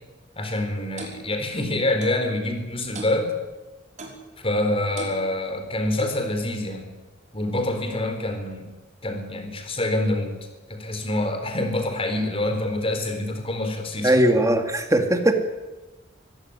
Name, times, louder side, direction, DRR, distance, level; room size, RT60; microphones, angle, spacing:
voice 1, 0.4-3.3 4.4-6.9 7.3-8.7 9.0-14.2, left 1 dB, 30° left, 6 dB, 4.3 m, -26 dB
Clock, 1.0-1.2 2.0-2.2 2.9-3.2 4.0-4.2 5.0-5.2 6.0-6.2, right 3 dB, 40° right, 5.4 m, -37 dB
voice 2, 14.0-15.3, right 1 dB, 15° right, 5 dB, 2.5 m, -19 dB
23.5 x 16.5 x 9.9 m, 1.1 s
head